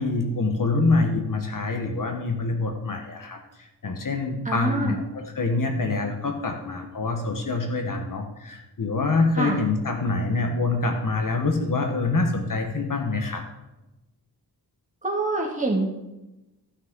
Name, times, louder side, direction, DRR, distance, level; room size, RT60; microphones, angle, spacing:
voice 1, 0.0-13.4, left 3 dB, 55° left, 3 dB, 1.3 m, -25 dB
voice 2, 4.5-5.0 9.4-9.6 15.0-15.9, right 2 dB, 20° right, -2 dB, 2.1 m, -25 dB
14.5 x 6.2 x 3.8 m, 1.0 s
wide cardioid pair, 140°, 40 cm